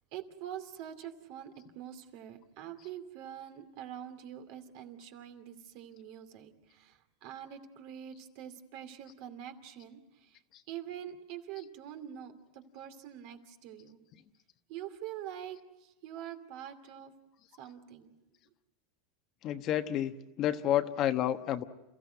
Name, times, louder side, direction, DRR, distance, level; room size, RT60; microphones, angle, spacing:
voice 1, 0.1-10.4 10.7-14.0 14.7-17.1 17.6-18.1, right 10 dB, 60° right, 7 dB, 2.5 m, -45 dB
voice 2, 19.4-21.6, left 11 dB, 40° left, 9 dB, 1.2 m, -30 dB
28.5 x 15.0 x 9.2 m, 1.0 s
supercardioid pair, 135°, 0 cm